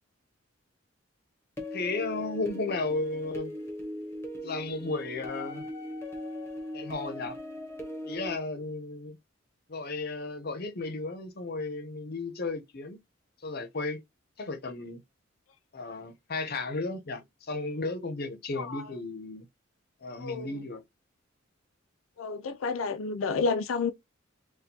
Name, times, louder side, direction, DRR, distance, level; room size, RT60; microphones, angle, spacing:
sound 1, 1.6-8.4, left 1 dB, 15° left, 0.9 m, -39 dB
voice 1, 1.7-3.5 4.4-5.7 6.7-7.4 8.0-9.2 9.7-13.0 13.4-14.0 14.4-15.0 15.7-19.4 20.0-20.8, left 3 dB, 50° left, 0.7 m, -34 dB
voice 2, 20.2-20.6 22.2-23.9, left 4 dB, 90° left, 0.5 m, -30 dB
4.2 x 2.3 x 2.7 m
head